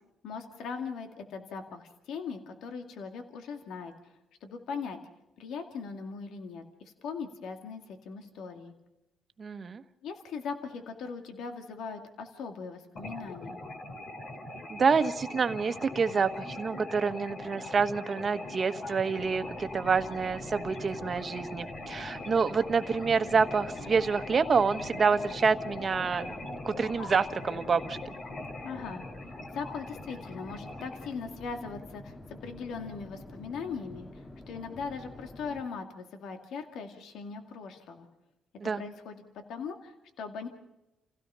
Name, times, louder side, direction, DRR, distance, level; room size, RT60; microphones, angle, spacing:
voice 1, 0.2-4.1 4.4-5.0 5.4-8.7 10.0-13.6 28.6-29.0 29.5-38.1 38.8-39.2 39.5-40.5, left 5 dB, 80° left, 5 dB, 2.2 m, -40 dB
voice 2, 9.4-9.8 14.7-28.0 38.6-38.8, right 5 dB, 40° right, 10 dB, 1.3 m, -27 dB
sound 1, 13.0-31.1, left 2 dB, 55° left, 3.2 m, -41 dB
sound 2, 19.2-35.6, left 1 dB, 20° left, 1.9 m, -47 dB
29.5 x 16.5 x 5.6 m, 0.93 s
cardioid pair, 90°, 0 cm